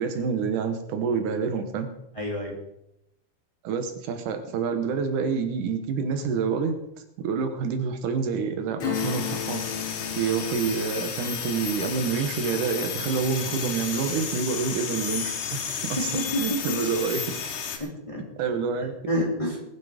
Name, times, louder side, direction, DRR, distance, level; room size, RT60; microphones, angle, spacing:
voice 1, 0.0-1.9 3.6-6.8 7.2-9.6 10.2-17.3 18.4-18.9, right 5 dB, 80° right, 7 dB, 2.8 m, -27 dB
voice 2, 2.2-2.5 16.0-16.8 17.8-18.2 19.1-19.6, equal, 10° left, -3 dB, 2.8 m, -28 dB
Acoustic guitar / Strum, 8.8-15.0 15.4-15.5, left 7 dB, 45° left, 2.5 m, -36 dB
sound 1, 8.9-17.8, left 7 dB, 80° left, 2.9 m, -32 dB
20.5 x 7.5 x 5.0 m, 0.83 s
omnidirectional pair, 3.5 m